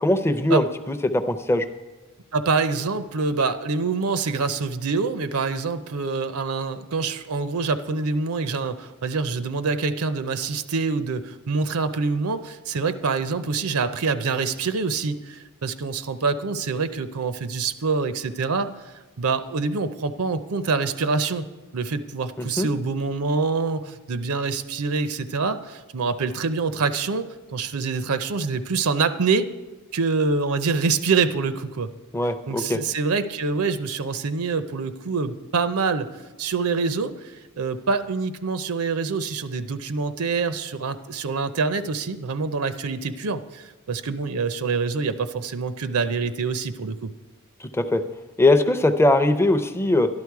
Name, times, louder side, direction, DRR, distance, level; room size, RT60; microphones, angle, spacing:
voice 1, 0.0-1.7 22.4-22.7 32.1-32.8 47.6-48.0 48.4-50.1, left 2 dB, 10° left, 9 dB, 0.6 m, -21 dB
voice 2, 2.3-18.7 19.2-21.5 21.7-29.5 29.9-31.9 32.5-36.1 36.4-47.1, right 4 dB, 75° right, 11 dB, 0.6 m, -25 dB
12.0 x 11.5 x 4.7 m, 1.2 s
head